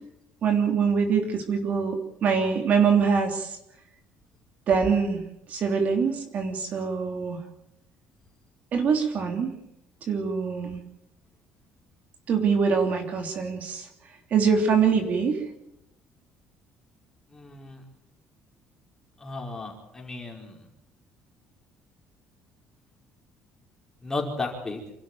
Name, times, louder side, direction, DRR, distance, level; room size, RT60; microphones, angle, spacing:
voice 1, 0.4-3.6 4.7-5.2 5.5-7.4 8.7-9.5 10.0-10.8 12.3-13.9 14.3-15.5, right 6 dB, 45° right, 4 dB, 3.2 m, -24 dB
voice 2, 17.3-17.8 19.2-20.7 24.0-24.8, left 3 dB, 15° left, 0 dB, 5.0 m, -34 dB
28.0 x 12.5 x 9.1 m, 0.84 s
cardioid pair, 160°, 4 cm